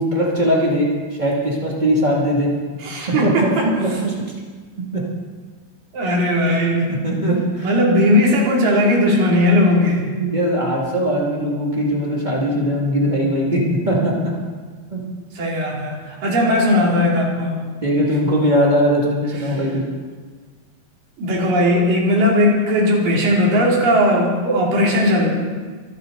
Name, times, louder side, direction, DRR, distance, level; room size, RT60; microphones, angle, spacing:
voice 1, 0.0-2.5 3.2-3.5 3.8-4.1 4.9-5.0 6.0-6.1 6.9-7.7 10.1-14.1 14.9-15.0 17.8-19.9, equal, 20° right, -4 dB, 1.0 m, -20 dB
voice 2, 2.8-3.9 5.9-6.9 7.6-10.1 15.3-17.6 19.5-19.6 21.2-25.3, left 1 dB, 50° right, -3 dB, 4.2 m, -17 dB
24.5 x 12.5 x 3.9 m, 1.5 s
omnidirectional pair, 5.4 m